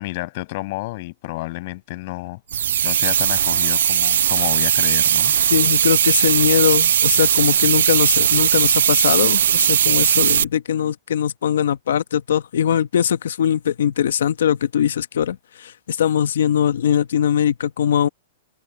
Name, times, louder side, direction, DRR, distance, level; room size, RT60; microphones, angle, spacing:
voice 1, 0.0-2.4 2.8-5.3, left 21 dB, 45° left, 7.4 m, -30 dB
sound 1, 2.5-10.4, right 9 dB, 80° right, 0.3 m, -18 dB
voice 2, 5.5-18.1, left 9 dB, 80° left, 1.1 m, -21 dB
hypercardioid pair, 160°, 0 cm